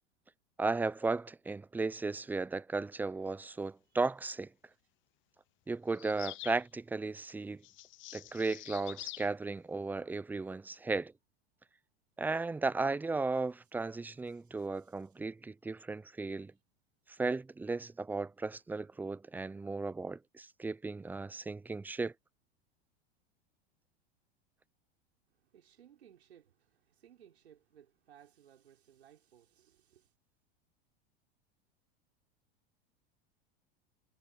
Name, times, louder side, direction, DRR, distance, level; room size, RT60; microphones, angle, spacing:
voice 1, 0.6-4.5 5.7-7.6 8.1-11.1 12.2-16.5 17.1-22.1, right 3 dB, 5° right, 0.4 m, -35 dB
sound 1, 5.9-6.6 7.6-9.3, left 19 dB, 40° left, 0.7 m, -46 dB
voice 2, 13.9-15.2 16.5-16.6 25.3-30.1, right 10 dB, 90° right, 4.5 m, -62 dB
hypercardioid pair, 105°, 31 cm